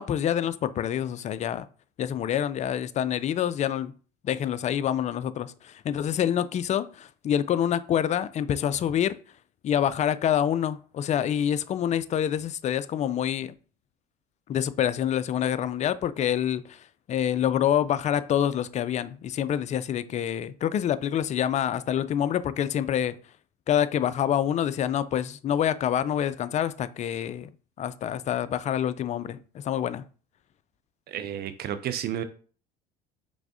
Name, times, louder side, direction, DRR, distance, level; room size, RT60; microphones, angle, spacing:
voice 1, 0.0-1.7 2.0-3.9 4.2-9.1 9.6-13.6 14.5-23.1 23.7-27.5 27.8-30.0, left 10 dB, 35° left, 0.4 m, -27 dB
voice 2, 31.1-32.2, right 10 dB, 50° right, 0.5 m, -31 dB
4.6 x 3.4 x 2.7 m
hypercardioid pair, 75°, 21 cm